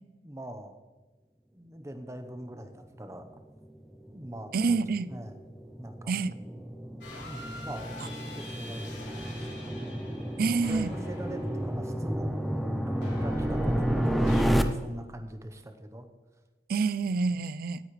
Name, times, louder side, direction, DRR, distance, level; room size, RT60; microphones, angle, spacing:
voice 1, 0.2-0.8 1.5-3.3 4.1-4.8 5.1-5.3 5.8-6.1 7.3-10.0 10.6-16.1 17.3-17.4, equal, 15° right, 7 dB, 0.9 m, -42 dB
sound 1, 3.5-14.6, equal, ahead, 0.6 m, -31 dB
voice 2, 4.5-5.1 6.1-6.3 10.4-10.9 16.7-17.8, right 4 dB, 55° right, 16 dB, 0.4 m, -27 dB
sound 2, 7.0-12.1 13.0-14.4, left 1 dB, 90° left, 3.4 m, -44 dB
17.5 x 9.7 x 3.2 m, 1.3 s
head